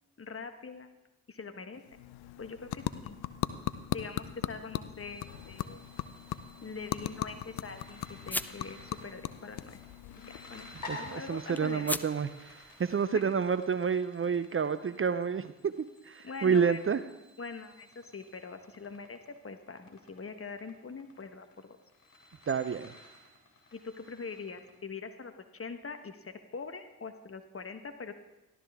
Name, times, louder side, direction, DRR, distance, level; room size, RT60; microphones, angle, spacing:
voice 1, 0.2-1.0 1.3-1.8 2.4-3.2 3.9-5.9 6.6-9.8 10.1-10.7 10.9-11.9 13.1-13.3 16.2-16.8 17.4-21.8 23.7-28.1, left 4 dB, 35° left, 8 dB, 1.4 m, -43 dB
sound 1, 1.7-11.2, left 13 dB, 70° left, 0.7 m, -39 dB
sound 2, 4.9-24.7, left 1 dB, 55° left, 3.7 m, -52 dB
sound 3, 5.3-13.1, left 1 dB, 5° left, 0.3 m, -44 dB
voice 2, 10.9-17.0 22.5-22.9, right 6 dB, 35° right, 12 dB, 0.7 m, -29 dB
14.5 x 12.0 x 3.6 m, 0.98 s
hypercardioid pair, 45°, 40 cm